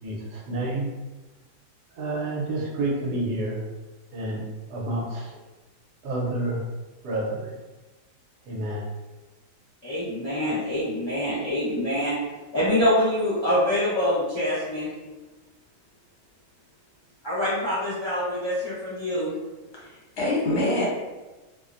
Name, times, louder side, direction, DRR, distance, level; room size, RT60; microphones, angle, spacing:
voice 1, 0.0-0.9 1.9-3.6 4.1-4.4 4.7-5.3 6.0-6.6 7.0-7.6 8.5-8.9, right 2 dB, 75° right, -3 dB, 1.1 m, -29 dB
voice 2, 9.8-12.2 12.5-14.9 17.2-19.3, left 1 dB, 40° left, -12 dB, 0.4 m, -25 dB
voice 3, 19.7-20.9, left 1 dB, 70° left, -6 dB, 1.3 m, -25 dB
2.9 x 2.1 x 2.4 m, 1.2 s
omnidirectional pair, 1.8 m